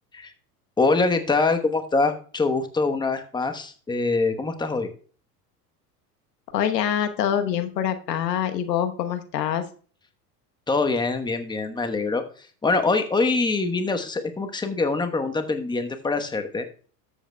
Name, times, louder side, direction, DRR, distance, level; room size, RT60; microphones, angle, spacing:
voice 1, 0.8-4.9 10.7-12.2 12.6-16.6, left 3 dB, 10° left, 7 dB, 1.0 m, -24 dB
voice 2, 6.5-9.6, left 9 dB, 85° left, 8 dB, 1.2 m, -25 dB
13.5 x 8.0 x 2.2 m, 0.41 s
hypercardioid pair, 95°, 48 cm